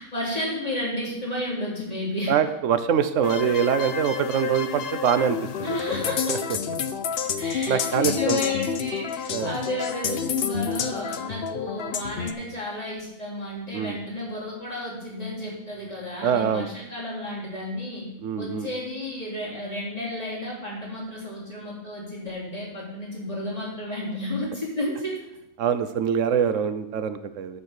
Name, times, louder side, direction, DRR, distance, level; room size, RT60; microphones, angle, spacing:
voice 1, 0.0-2.3 5.6-6.2 7.4-18.1 18.4-25.2, left 1 dB, 30° left, -5 dB, 3.4 m, -32 dB
voice 2, 2.3-5.8 6.3-6.4 7.7-8.4 9.3-9.5 13.7-14.0 16.2-16.7 18.2-18.7 25.6-27.6, right 8 dB, 85° right, 11 dB, 1.1 m, -24 dB
sound 1, 3.2-12.3, left 7 dB, 60° left, 0.8 m, -29 dB
11.5 x 4.5 x 6.5 m, 0.84 s
omnidirectional pair, 1.3 m